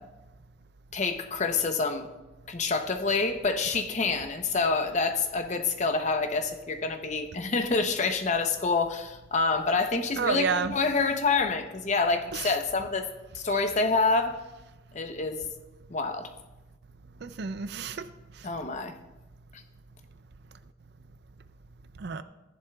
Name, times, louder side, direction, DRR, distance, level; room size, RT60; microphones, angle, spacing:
voice 1, 0.9-2.1 2.5-13.0 13.3-14.4 14.9-15.4 15.9-16.3 18.4-18.9, left 4 dB, 40° left, 6 dB, 0.7 m, -27 dB
voice 2, 10.2-10.8 12.3-12.5 17.2-18.0 22.0-22.2, right 5 dB, 55° right, 12 dB, 0.4 m, -30 dB
14.5 x 10.5 x 2.3 m, 1.1 s
head